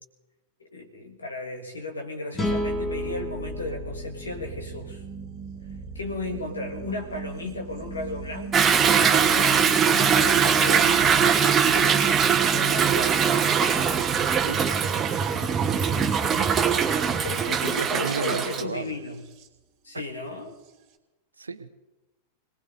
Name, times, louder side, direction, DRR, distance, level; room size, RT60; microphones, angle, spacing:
voice 1, 0.7-5.0 5.9-13.4 17.2-19.2 19.8-20.6, left 2 dB, 75° left, 1 dB, 1.7 m, -35 dB
sound 1, 2.3-5.7, left 1 dB, 20° left, 1.5 m, -32 dB
sound 2, 2.4-19.5 20.6-20.7, right 4 dB, 45° right, 1.8 m, -40 dB
Toilet flush / Drip / Trickle dribble, 8.5-18.6, right 7 dB, 25° right, 1.1 m, -21 dB
voice 2, 14.4-15.0 17.7-18.9 21.4-21.7, right 4 dB, 75° right, 12 dB, 0.8 m, -33 dB
26.0 x 18.5 x 2.7 m, 1.1 s
figure-of-eight pair, 90°, 0 cm